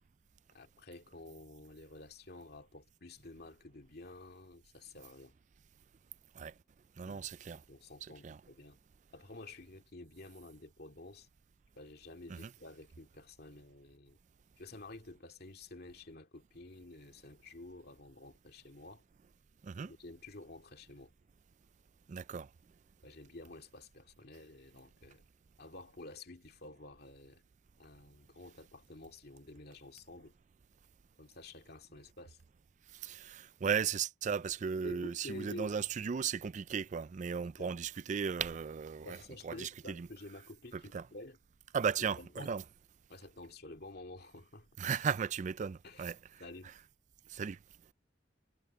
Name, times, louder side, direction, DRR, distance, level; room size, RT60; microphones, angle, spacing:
voice 1, 0.5-5.3 7.1-8.8 9.1-11.3 11.8-14.2 14.6-19.0 19.9-21.1 23.0-25.2 25.6-27.4 27.8-30.3 31.2-32.4 34.8-35.8 37.6-37.8 39.0-41.4 42.0-42.5 43.1-44.7 45.8-46.1 46.4-46.7, left 2 dB, 60° left, 2.3 m, -51 dB
voice 2, 7.0-7.6 8.2-8.4 12.3-12.5 19.6-19.9 22.1-22.5 32.9-39.2 39.4-40.1 40.7-41.0 41.7-42.6 44.8-46.2 47.3-47.6, right 6 dB, 40° right, 0.4 m, -36 dB
head